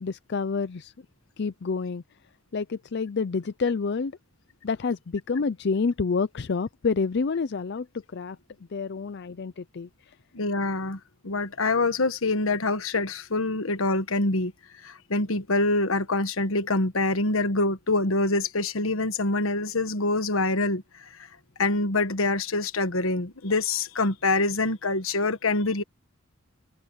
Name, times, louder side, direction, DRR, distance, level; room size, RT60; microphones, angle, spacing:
voice 1, 0.0-0.9 1.4-2.0 2.5-4.1 4.6-7.9 8.1-8.4 8.7-10.1, left 4 dB, 55° left, 0.5 m, -28 dB
voice 2, 10.3-14.5 14.8-21.1 21.6-25.8, left 2 dB, 80° left, 1.4 m, -25 dB
head